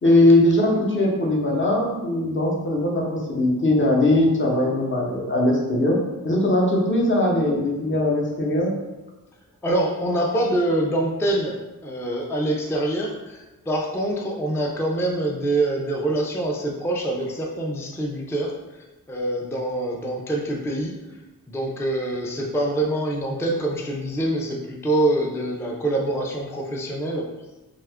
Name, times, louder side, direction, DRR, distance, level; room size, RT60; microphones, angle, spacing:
voice 1, 0.0-3.0 3.3-5.9 6.2-8.7, left 1 dB, 35° left, -3 dB, 0.7 m, -20 dB
voice 2, 9.6-18.5 19.1-20.9 21.5-27.3, right 1 dB, 10° left, 0 dB, 0.3 m, -25 dB
2.7 x 2.3 x 3.4 m, 1.1 s
wide cardioid pair, 100°, 36 cm